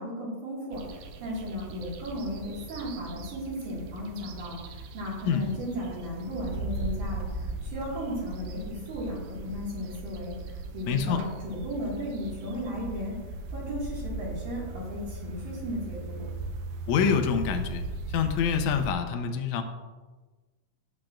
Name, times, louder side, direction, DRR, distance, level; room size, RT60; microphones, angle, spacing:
voice 1, 0.0-13.2 13.5-16.2, equal, 70° right, -8 dB, 3.6 m, -35 dB
sound 1, 0.7-18.9, right 2 dB, 85° right, 2.4 m, -38 dB
voice 2, 10.9-11.2 16.9-17.8 18.1-19.6, left 7 dB, 75° left, 6 dB, 1.8 m, -26 dB
11.5 x 8.0 x 2.5 m, 1.3 s
omnidirectional pair, 3.8 m